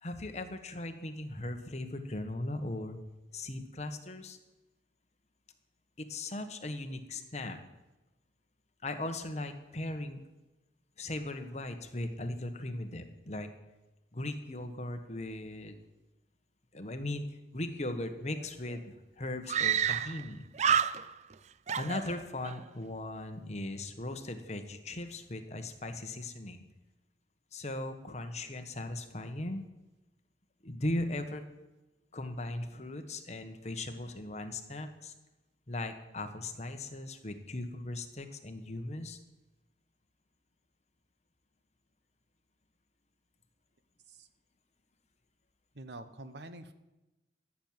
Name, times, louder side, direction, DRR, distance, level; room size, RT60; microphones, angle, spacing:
voice 1, 0.0-3.0 3.3-4.4 6.0-7.6 8.8-10.2 11.0-13.5 14.1-15.8 16.7-17.3 17.5-20.4 21.7-26.6 27.5-29.6 30.6-31.4 32.1-35.1 35.7-39.2, left 1 dB, 40° left, 7 dB, 1.3 m, -38 dB
Screaming, 18.4-18.5 18.7-18.8 19.5-20.3 20.5-21.3 21.7-22.6, right 8 dB, 40° right, 0.4 m, -29 dB
voice 2, 45.7-46.7, right 2 dB, 75° right, 11 dB, 1.1 m, -46 dB
14.5 x 7.3 x 9.4 m, 1.0 s
head